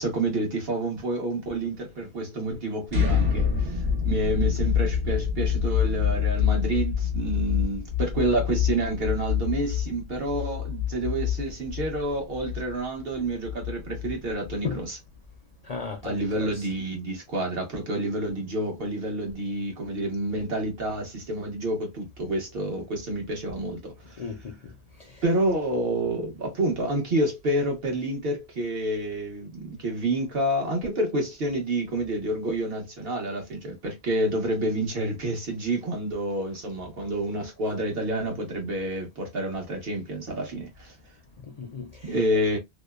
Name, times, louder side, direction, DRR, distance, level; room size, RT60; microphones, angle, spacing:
voice 1, 0.0-15.0 16.0-24.2 25.2-41.0 42.1-42.6, right 1 dB, 65° right, 1.2 m, -28 dB
sound 1, 2.9-14.7, left 8 dB, 80° right, 1.2 m, -27 dB
voice 2, 15.6-16.7 24.2-24.7 25.0-25.2 41.4-42.2, left 5 dB, 50° left, 0.5 m, -36 dB
2.7 x 2.1 x 2.2 m
omnidirectional pair, 1.1 m